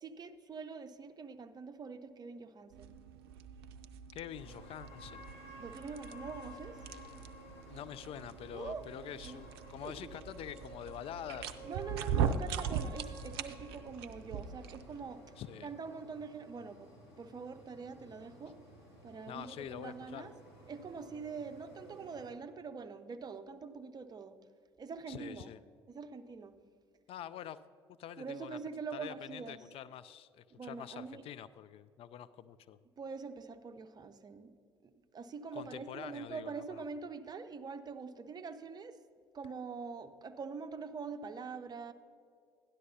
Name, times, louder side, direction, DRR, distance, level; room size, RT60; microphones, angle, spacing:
voice 1, 0.0-2.9 5.6-6.7 8.5-8.9 9.2-9.4 9.8-10.0 11.7-15.2 15.6-16.9 17.2-18.6 19.0-20.3 20.7-24.4 24.8-25.5 25.9-26.5 28.2-29.6 30.5-31.2 33.0-34.5 35.1-39.0 39.3-41.9, right 5 dB, 30° right, 9 dB, 0.7 m, -44 dB
sound 1, 2.7-15.0, right 7 dB, 75° right, 0.5 m, -40 dB
voice 2, 4.1-5.2 7.7-11.8 15.4-15.7 19.3-20.3 25.1-25.6 27.1-27.6 28.0-28.6 28.9-32.8 35.5-36.8, left 10 dB, 45° left, 14 dB, 0.4 m, -46 dB
sound 2, 4.3-22.3, equal, 75° left, 2.9 m, -54 dB
12.5 x 11.0 x 2.8 m, 2.3 s
figure-of-eight pair, 60°, 13 cm